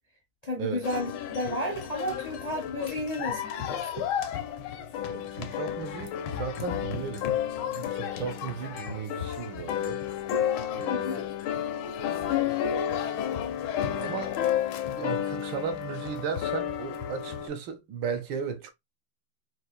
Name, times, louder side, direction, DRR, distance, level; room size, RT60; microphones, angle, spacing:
voice 1, 0.4-4.1 10.9-11.2, left 1 dB, 35° left, 0.6 m, -33 dB
sound 1, 0.8-17.5, left 9 dB, 90° left, 1.5 m, -31 dB
voice 2, 5.1-10.0 10.7-11.3 14.0-14.4 14.9-18.7, right 6 dB, 70° right, 1.3 m, -36 dB
4.3 x 2.6 x 2.2 m
omnidirectional pair, 2.2 m